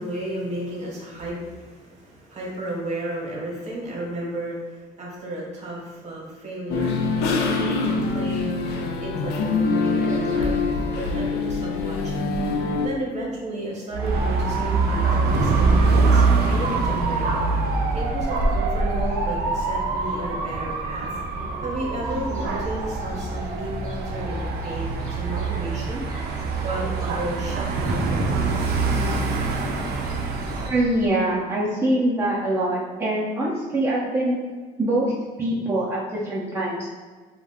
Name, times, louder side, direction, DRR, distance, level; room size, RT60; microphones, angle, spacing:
voice 1, 0.0-8.6 9.0-10.6 10.9-12.3 12.8-17.3 17.9-21.1 21.6-26.0 26.6-28.6, right 1 dB, 40° right, -3 dB, 0.9 m, -33 dB
sound 1, 6.7-12.9, left 3 dB, 80° left, 0.4 m, -24 dB
Dog / Motorcycle, 13.9-30.7, right 3 dB, 70° right, 0.4 m, -24 dB
sound 2, 22.0-31.1, left 1 dB, 35° left, 1.0 m, -38 dB
voice 2, 30.6-34.4 34.8-35.1 35.4-36.9, right 1 dB, 15° right, -7 dB, 0.5 m, -24 dB
2.4 x 2.1 x 3.4 m, 1.5 s
cardioid pair, 110°, 17 cm